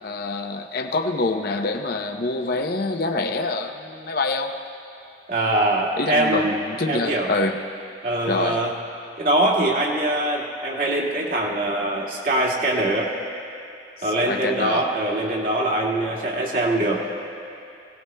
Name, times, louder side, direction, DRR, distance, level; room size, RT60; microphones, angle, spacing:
voice 1, 0.0-4.5 6.0-7.6 8.2-8.6 14.2-14.8, left 3 dB, 55° left, 3 dB, 0.7 m, -26 dB
voice 2, 5.3-6.6 6.9-7.3 8.0-8.7 9.2-13.1 14.0-17.0, right 1 dB, 50° right, -2 dB, 2.0 m, -23 dB
24.5 x 18.0 x 2.2 m, 2.6 s
head